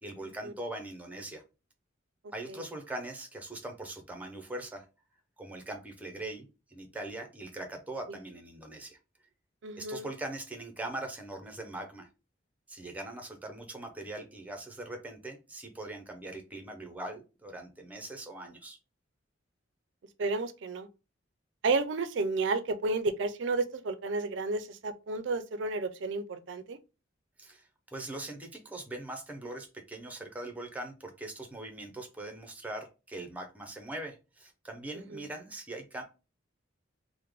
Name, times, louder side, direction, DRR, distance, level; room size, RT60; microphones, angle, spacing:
voice 1, 0.0-1.4 2.3-4.9 5.4-9.0 9.8-12.1 12.7-18.8 27.4-36.0, right 2 dB, 10° right, 0.6 m, -41 dB
voice 2, 9.6-10.1 20.2-20.9 21.6-26.8 34.9-35.2, right 3 dB, 65° right, 0.4 m, -31 dB
3.2 x 2.1 x 3.4 m
head